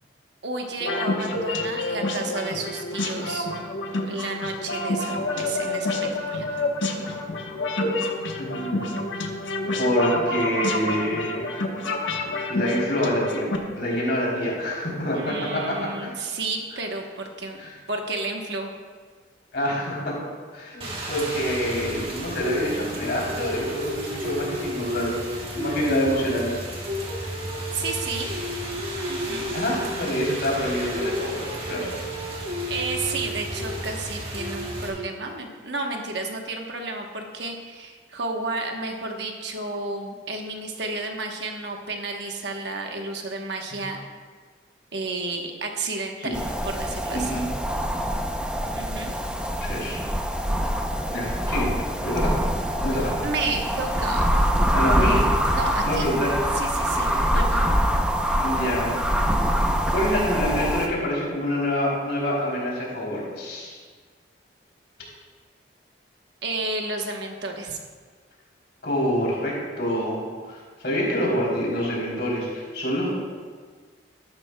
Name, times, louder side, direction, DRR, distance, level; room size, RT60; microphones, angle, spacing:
voice 1, 0.4-3.5 4.1-6.5 15.2-17.6 17.9-18.7 27.7-28.3 29.1-29.5 32.7-44.0 44.9-47.4 48.7-49.1 53.2-54.2 55.5-56.1 56.5-57.6 66.4-67.8, right 3 dB, 65° right, 2 dB, 1.1 m, -31 dB
sound 1, 0.8-13.6, left 2 dB, 85° left, 1.1 m, -28 dB
voice 2, 8.4-8.8 9.8-11.5 12.5-13.4 13.7-16.1 17.6-17.7 19.5-20.2 20.5-25.2 25.5-26.6 29.5-32.0 43.7-43.8 46.2-46.3 47.1-47.5 49.6-50.0 51.1-51.7 52.0-52.3 52.8-53.1 54.7-55.2 55.8-56.5 56.9-57.2 58.3-59.0 59.9-63.8 68.8-70.6 70.8-73.1, equal, 60° left, -4 dB, 3.3 m, -26 dB
Rain, 20.8-34.9, right 1 dB, 30° right, 1.8 m, -31 dB
sound 2, 46.3-60.9, equal, 5° right, 0.6 m, -24 dB
13.0 x 11.5 x 2.2 m, 1.5 s
head